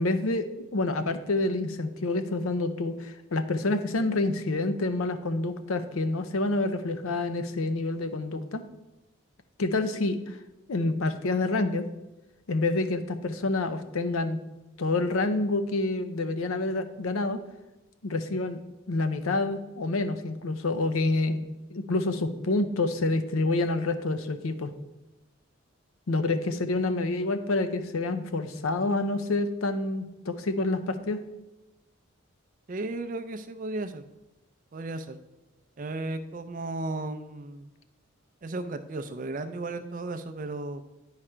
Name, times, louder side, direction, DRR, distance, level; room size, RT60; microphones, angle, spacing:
voice 1, 0.0-8.6 9.6-10.4 10.7-11.9 12.5-14.4 14.8-17.4 18.0-18.6 18.9-21.4 21.7-24.7 26.1-31.2, left 2 dB, 80° left, 10 dB, 0.6 m, -28 dB
voice 2, 32.7-34.0 34.7-35.2 35.8-37.7 38.4-40.8, right 2 dB, 40° right, 9 dB, 0.4 m, -34 dB
9.5 x 4.9 x 4.4 m, 1.0 s
head